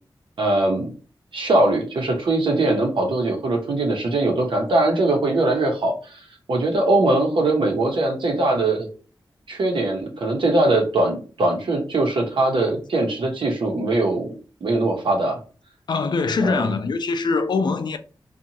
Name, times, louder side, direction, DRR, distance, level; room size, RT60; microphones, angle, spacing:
voice 1, 0.4-0.9 1.3-6.2 6.5-8.9 9.5-14.4 14.6-15.4 16.4-16.7, right 2 dB, 85° right, 0.8 m, -21 dB
voice 2, 15.9-18.0, left 4 dB, 60° left, 0.4 m, -23 dB
2.7 x 2.3 x 2.8 m
wide cardioid pair, 110°, 8 cm